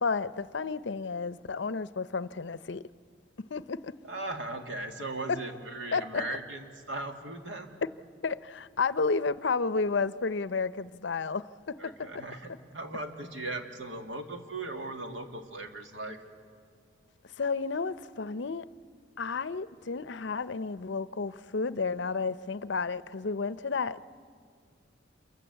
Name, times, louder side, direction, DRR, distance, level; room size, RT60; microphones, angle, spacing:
voice 1, 0.0-2.8 3.5-3.9 5.3-5.4 5.9-6.2 8.2-12.1 17.4-18.7 19.2-24.1, left 4 dB, 65° left, 0.6 m, -31 dB
voice 2, 4.0-7.7 11.8-16.2, right 2 dB, 75° right, 2.3 m, -38 dB
28.0 x 23.0 x 8.2 m
head